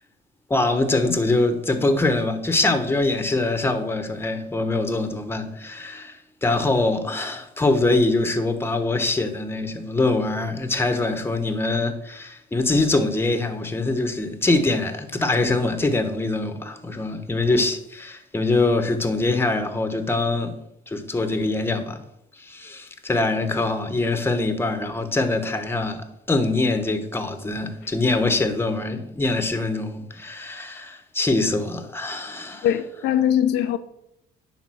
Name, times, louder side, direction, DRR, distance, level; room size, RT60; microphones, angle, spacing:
voice 1, 0.5-20.5 20.9-22.0 22.4-32.7, left 2 dB, 15° left, 1.1 m, -23 dB
voice 2, 32.6-33.8, left 10 dB, 85° left, 0.7 m, -21 dB
10.0 x 4.0 x 6.2 m
cardioid pair, 110°, 17 cm